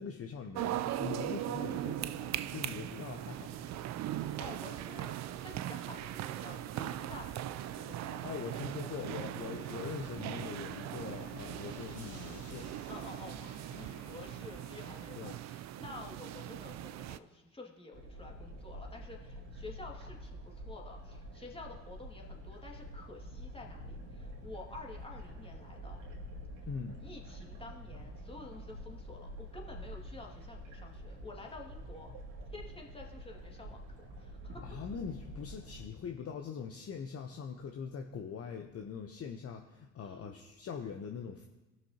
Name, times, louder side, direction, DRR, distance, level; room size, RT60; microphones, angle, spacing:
voice 1, 0.0-3.7 8.2-12.7 15.2-15.4 26.7-27.0 34.6-41.5, left 6 dB, 40° left, 4 dB, 0.8 m, -42 dB
sound 1, 0.5-17.2, right 13 dB, 50° right, 0.4 m, -40 dB
sound 2, 0.6-15.1, left 7 dB, 90° left, 0.7 m, -56 dB
voice 2, 4.1-8.2 12.9-26.0 27.0-32.1 32.5-34.6 40.0-40.4, left 3 dB, 15° left, 0 dB, 2.2 m, -50 dB
sound 3, 17.9-35.9, equal, 75° right, 2.2 m, -47 dB
18.5 x 6.2 x 2.9 m, 1.1 s
hypercardioid pair, 60°, 37 cm